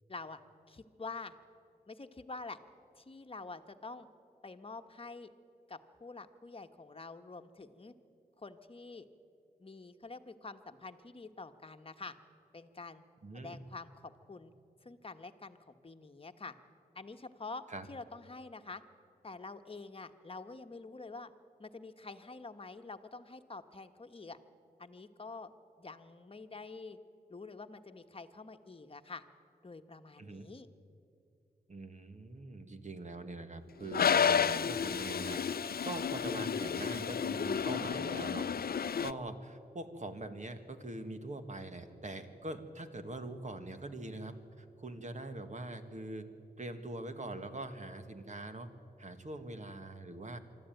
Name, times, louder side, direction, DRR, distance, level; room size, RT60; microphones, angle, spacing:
voice 1, 0.1-0.4 0.7-1.4 1.9-2.6 2.9-4.1 4.4-5.3 5.7-7.9 8.4-9.1 9.6-12.1 12.5-13.0 13.3-14.5 14.8-16.5 16.9-17.6 17.9-18.8 19.2-21.3 21.6-24.4 24.8-25.5 25.8-27.0 27.3-29.2 29.6-30.7, left 3 dB, 35° left, 7 dB, 1.2 m, -47 dB
voice 2, 13.2-13.6 17.7-17.9 30.2-30.5 31.7-46.3 46.6-48.7 49.0-50.4, right 2 dB, 45° right, 8 dB, 1.6 m, -43 dB
Toilet flush, 33.9-39.1, left 7 dB, 65° left, 0.5 m, -31 dB
25.0 x 13.0 x 9.1 m, 2.6 s
wide cardioid pair, 85°, 17 cm